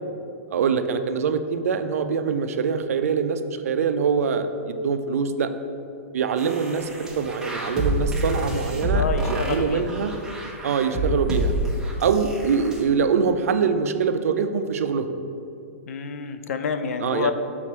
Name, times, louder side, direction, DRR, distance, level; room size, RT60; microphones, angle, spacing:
voice 1, 0.5-5.5 6.1-10.1 10.6-11.5 12.0-15.1 17.0-17.3, right 6 dB, 75° right, 9 dB, 0.5 m, -24 dB
sound 1, 6.4-12.8, equal, 10° right, 0.9 m, -28 dB
voice 2, 8.9-9.9 15.9-17.3, left 5 dB, 70° left, 9 dB, 0.5 m, -28 dB
5.9 x 4.1 x 4.3 m, 2.6 s
hypercardioid pair, 125°, 8 cm